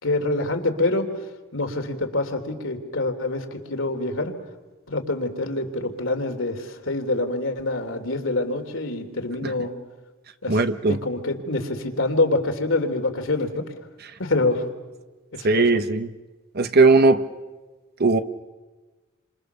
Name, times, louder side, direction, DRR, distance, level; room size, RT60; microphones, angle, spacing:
voice 1, 0.0-1.1 1.5-4.4 4.9-9.7 10.4-10.6 10.9-13.6 14.2-14.6 15.3-15.6, left 2 dB, 70° left, 3.2 m, -26 dB
voice 2, 10.5-11.0 15.4-16.1 16.5-17.2 18.0-18.2, right 3 dB, 50° right, 1.0 m, -18 dB
29.5 x 27.0 x 6.9 m
head